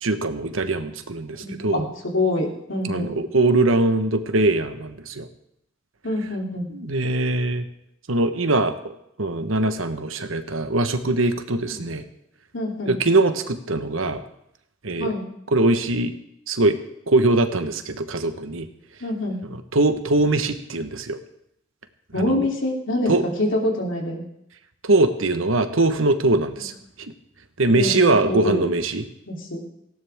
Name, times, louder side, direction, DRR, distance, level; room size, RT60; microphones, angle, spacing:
voice 1, 0.0-1.9 2.8-5.3 6.7-7.6 8.1-8.9 9.2-12.0 12.8-14.2 14.8-15.1 15.5-16.1 16.5-16.8 17.1-18.7 19.7-21.2 22.2-22.4 23.1-23.2 24.8-26.7 27.6-29.0, right 2 dB, 75° right, 9 dB, 1.3 m, -21 dB
voice 2, 1.4-3.1 6.0-6.7 11.7-11.8 12.5-13.0 15.0-15.3 19.0-19.5 22.1-24.2 26.6-26.7 27.7-28.6 29.3-29.6, left 1 dB, 65° left, 0 dB, 3.1 m, -26 dB
18.5 x 16.5 x 3.6 m, 0.78 s
head